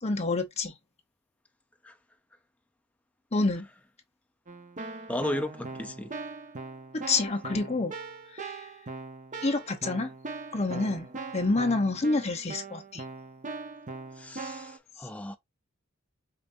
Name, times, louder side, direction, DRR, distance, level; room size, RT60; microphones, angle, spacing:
voice 1, 0.0-0.7 3.3-3.7 7.1-7.9 8.3-8.6 9.4-10.1 10.5-13.0, left 3 dB, 30° left, 0.8 m, -28 dB
Keyboard (musical), 4.5-14.8, right 3 dB, 35° right, 0.7 m, -41 dB
voice 2, 5.1-6.1 14.2-15.4, left 1 dB, 5° left, 0.4 m, -34 dB
5.1 x 2.7 x 2.5 m
head